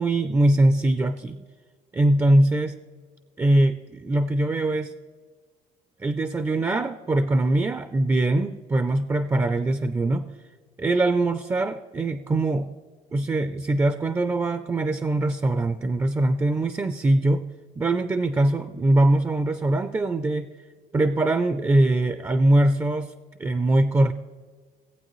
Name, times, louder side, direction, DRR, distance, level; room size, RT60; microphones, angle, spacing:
voice 1, 0.0-1.4 1.9-2.8 3.4-4.9 6.0-10.3 10.8-12.7 13.1-17.4 17.8-20.5 20.9-23.1 23.4-24.1, right 1 dB, 15° right, 11 dB, 0.3 m, -22 dB
18.0 x 8.3 x 3.1 m, 1.5 s
cardioid pair, 110°, 17 cm